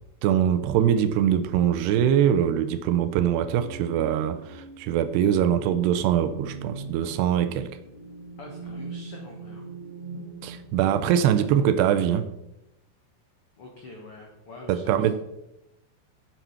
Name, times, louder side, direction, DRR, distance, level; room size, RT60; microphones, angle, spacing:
voice 1, 0.2-7.7 10.4-12.3 14.7-15.2, right 9 dB, 80° right, 11 dB, 2.6 m, -23 dB
sound 1, 2.6-10.8, right 3 dB, 20° left, 2.6 m, -42 dB
voice 2, 8.4-9.7 13.6-15.2, left 2 dB, 85° left, 0 dB, 1.2 m, -44 dB
8.3 x 7.3 x 5.6 m, 0.89 s
omnidirectional pair, 4.9 m